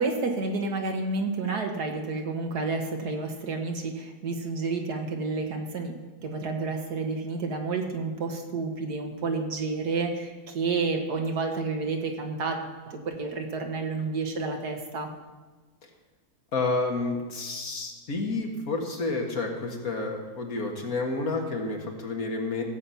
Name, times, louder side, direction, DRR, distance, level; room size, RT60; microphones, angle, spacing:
voice 1, 0.0-5.9 6.2-12.6 12.9-15.1, right 3 dB, 80° right, 3 dB, 2.0 m, -30 dB
voice 2, 16.5-22.6, left 3 dB, 65° left, 1 dB, 2.1 m, -30 dB
16.0 x 7.7 x 5.7 m, 1.3 s
omnidirectional pair, 1.7 m